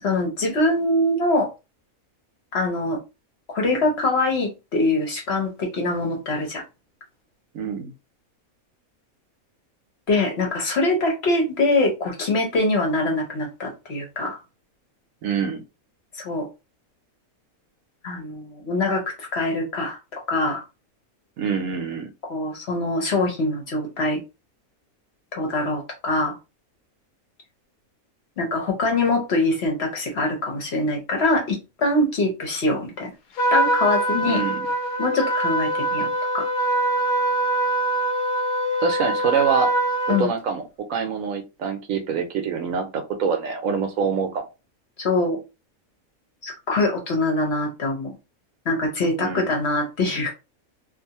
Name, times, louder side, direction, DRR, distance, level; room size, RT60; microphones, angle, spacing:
voice 1, 0.0-1.5 2.5-3.0 3.5-6.6 10.1-14.4 16.1-16.5 18.0-20.6 22.3-24.2 25.3-26.4 28.4-33.1 33.5-34.4 35.0-36.5 40.1-40.3 45.0-45.4 46.4-48.2 48.6-50.3, left 2 dB, 55° left, 0.9 m, -23 dB
voice 2, 7.5-7.9 15.2-15.6 21.4-22.1 34.3-34.7 38.8-39.7 40.2-44.4 49.2-49.5, right 6 dB, 70° right, 0.9 m, -25 dB
Trumpet, 33.4-40.3, right 1 dB, 85° left, 1.1 m, -23 dB
2.5 x 2.4 x 2.7 m
omnidirectional pair, 1.5 m